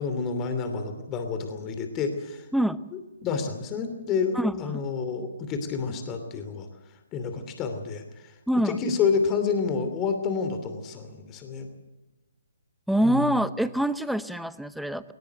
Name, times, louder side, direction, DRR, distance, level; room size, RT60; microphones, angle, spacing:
voice 1, 0.0-2.5 2.9-6.7 7.1-8.3 8.6-11.7 13.0-13.3, left 5 dB, 20° left, 7 dB, 2.8 m, -29 dB
voice 2, 4.3-4.8 8.5-8.8 12.9-15.1, right 1 dB, ahead, 14 dB, 0.8 m, -25 dB
20.0 x 19.5 x 7.9 m, 1.0 s
figure-of-eight pair, 135°, 0 cm